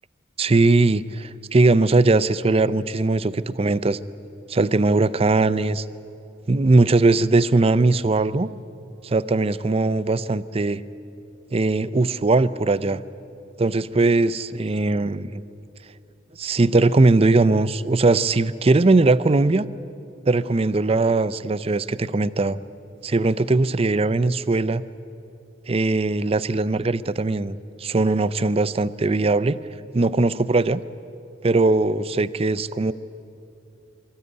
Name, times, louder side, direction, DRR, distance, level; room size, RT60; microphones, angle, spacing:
voice 1, 0.4-4.0 4.5-5.8 6.5-8.5 9.0-10.8 11.5-13.0 13.6-15.4 16.4-19.7 20.3-22.6 23.0-24.8 25.7-29.6 29.9-30.8 31.4-32.9, right 3 dB, 30° right, 16 dB, 0.5 m, -20 dB
24.5 x 14.0 x 9.7 m, 2.8 s
head